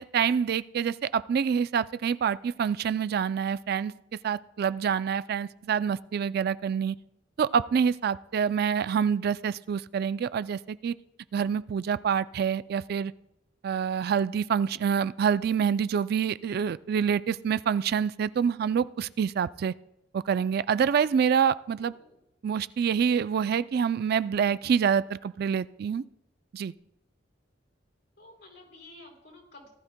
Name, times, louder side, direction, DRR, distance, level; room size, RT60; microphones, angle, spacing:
voice 1, 0.0-3.9 4.2-7.0 7.4-10.9 11.3-13.1 13.6-19.7 20.1-21.9 22.4-26.0 26.5-26.7, right 7 dB, 55° right, 16 dB, 0.3 m, -26 dB
voice 2, 21.8-22.2 28.2-29.7, left 2 dB, 65° left, 1 dB, 4.3 m, -51 dB
18.5 x 12.5 x 2.2 m, 0.86 s
head